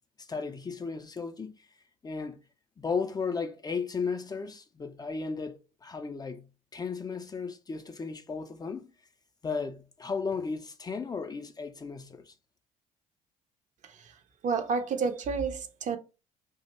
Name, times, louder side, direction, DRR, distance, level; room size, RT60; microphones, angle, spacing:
voice 1, 0.2-1.7 2.0-2.4 2.8-8.9 9.4-12.3, left 5 dB, 20° left, 0.4 m, -35 dB
voice 2, 13.8-14.1 14.4-16.0, right 5 dB, 45° right, 0.5 m, -30 dB
2.7 x 2.1 x 4.0 m
figure-of-eight pair, 50°, 18 cm